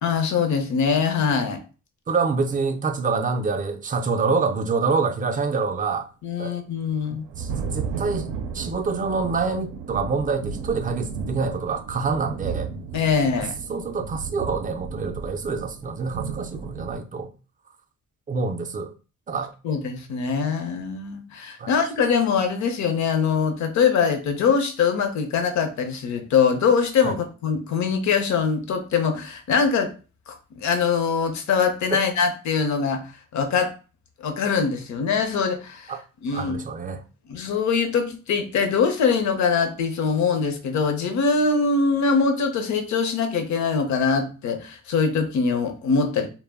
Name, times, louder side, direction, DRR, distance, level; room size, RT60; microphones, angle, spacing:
voice 1, 0.0-1.6 6.2-7.3 12.9-13.5 19.6-29.9 30.3-33.0 33.3-33.7 34.2-35.9 36.2-36.6 37.3-46.3, left 5 dB, 70° left, 0.7 m, -23 dB
voice 2, 2.1-6.1 6.4-6.5 7.4-12.7 13.7-17.3 18.3-18.9 19.3-19.5 21.6-21.7 27.0-27.2 35.9-36.0 36.3-37.0, right 4 dB, 30° right, 0.4 m, -26 dB
Thunder, 6.8-16.9, right 5 dB, 85° right, 0.5 m, -34 dB
2.2 x 2.0 x 3.4 m
cardioid pair, 90°, 30 cm